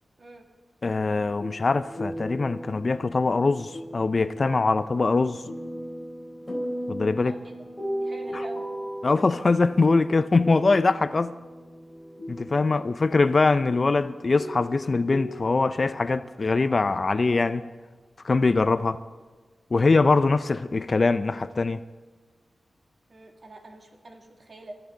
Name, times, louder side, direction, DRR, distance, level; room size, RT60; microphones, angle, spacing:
voice 1, 0.8-5.4 6.9-7.3 8.3-8.4 9.0-11.3 12.3-17.7 18.2-19.0 19.7-21.8, left 3 dB, 35° left, 0.4 m, -23 dB
sound 1, 1.0-13.0 13.9-14.0 14.4-17.4, equal, 10° left, 4.3 m, -37 dB
voice 2, 7.2-7.5 8.0-8.6 12.7-12.9 23.1-24.8, right 1 dB, 45° right, 2.1 m, -45 dB
26.0 x 14.0 x 3.9 m
wide cardioid pair, 155°, 0 cm